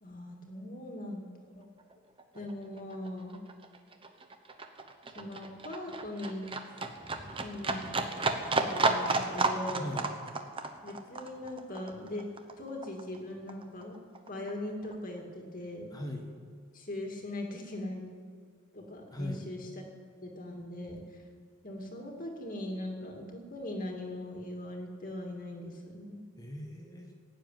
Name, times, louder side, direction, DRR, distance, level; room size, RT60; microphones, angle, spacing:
voice 1, 0.0-1.7 2.3-3.4 5.1-6.5 7.1-7.8 8.5-9.9 10.8-12.3 12.6-14.0 14.2-15.9 16.7-18.0 18.7-19.7 20.2-21.2 21.6-26.2, left 1 dB, 40° left, 2 dB, 2.3 m, -40 dB
Livestock farm animals working animals, 1.8-1.9 2.2-13.2 13.5-14.5 14.8-14.9, right 3 dB, 25° right, 0.9 m, -33 dB
voice 2, 9.8-10.1 15.9-16.3 19.1-19.5 26.3-27.1, left 1 dB, 15° left, 2 dB, 1.6 m, -39 dB
16.0 x 7.5 x 9.3 m, 2.1 s
head